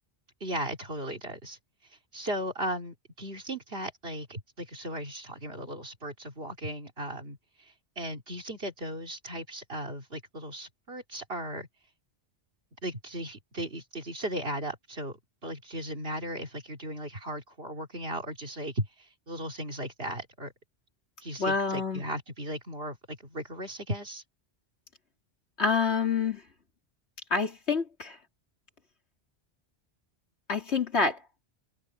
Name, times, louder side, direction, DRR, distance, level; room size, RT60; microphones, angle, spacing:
voice 1, 0.4-1.6 2.1-11.7 12.8-20.5 21.2-24.2, right 1 dB, 65° right, 3.1 m, -36 dB
voice 2, 21.4-22.0 25.6-26.4 27.3-28.2 30.5-31.2, left 5 dB, 90° left, 3.1 m, -27 dB
omnidirectional pair, 1.1 m